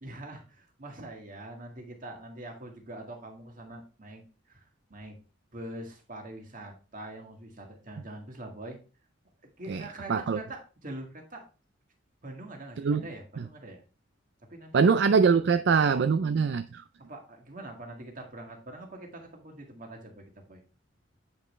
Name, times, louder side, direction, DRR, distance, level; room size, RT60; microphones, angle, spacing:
voice 1, 0.0-5.2 5.5-8.8 9.6-11.5 12.2-13.8 14.5-14.9 17.1-20.6, right 1 dB, 40° right, 1.9 m, -44 dB
voice 2, 14.7-16.8, right 5 dB, 60° right, 0.4 m, -23 dB
8.3 x 5.2 x 3.2 m
head